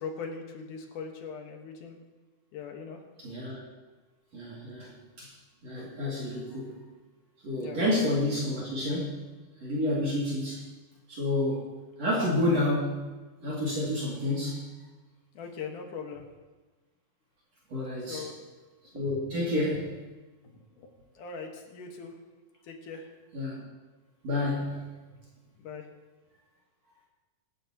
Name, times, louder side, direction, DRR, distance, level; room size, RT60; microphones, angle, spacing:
voice 1, 0.0-2.0 2.5-3.0 7.6-7.8 15.3-16.2 18.0-18.3 20.5-20.9 21.1-22.1 22.6-23.1 24.7-24.8 25.6-25.9, left 5 dB, 75° left, 2 dB, 3.0 m, -40 dB
voice 2, 3.2-3.6 4.3-5.3 5.6-6.8 7.4-9.3 9.6-10.6 11.1-11.7 12.0-13.1 13.4-14.7 17.7-18.3 18.9-19.9 23.3-23.6 24.2-24.8, left 1 dB, 55° right, -6 dB, 3.7 m, -29 dB
23.5 x 11.5 x 3.0 m, 1.3 s
omnidirectional pair, 3.7 m